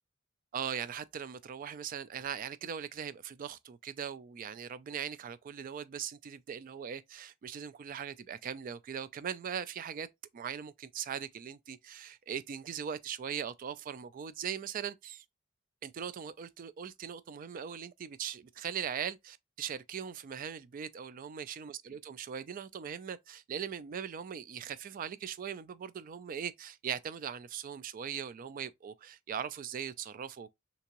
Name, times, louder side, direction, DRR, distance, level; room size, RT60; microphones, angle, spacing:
voice 1, 0.5-10.1 10.3-15.2 15.8-30.5, right 8 dB, 45° right, 0.3 m, -40 dB
3.4 x 2.9 x 2.9 m
head